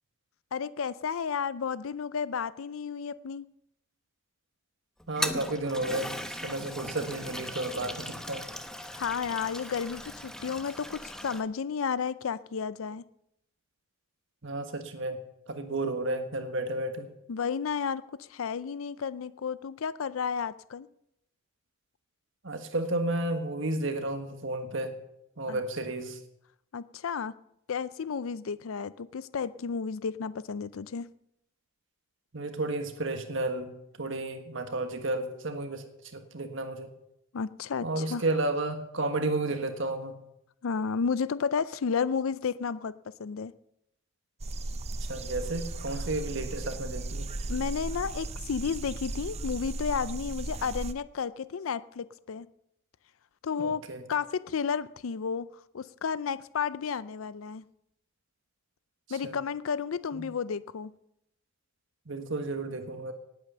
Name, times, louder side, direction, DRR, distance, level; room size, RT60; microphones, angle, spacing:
voice 1, 0.5-3.5 8.9-13.1 17.3-20.9 25.5-25.6 26.7-27.3 27.7-31.1 37.3-38.2 40.6-43.5 47.5-52.5 53.4-55.5 55.7-57.6 59.1-60.9, left 6 dB, 80° left, 0.5 m, -32 dB
Toilet flush, 5.0-11.4, equal, 5° left, 1.0 m, -38 dB
voice 2, 5.1-8.4 14.4-15.2 15.5-17.1 22.4-25.0 25.4-26.2 32.3-35.8 36.1-36.9 37.8-40.2 45.0-47.3 53.6-54.0 59.1-59.4 60.1-60.2 62.1-63.1, right 2 dB, 65° right, 1.5 m, -32 dB
sound 1, 44.4-50.9, right 2 dB, 30° right, 0.6 m, -36 dB
18.5 x 8.7 x 6.8 m
head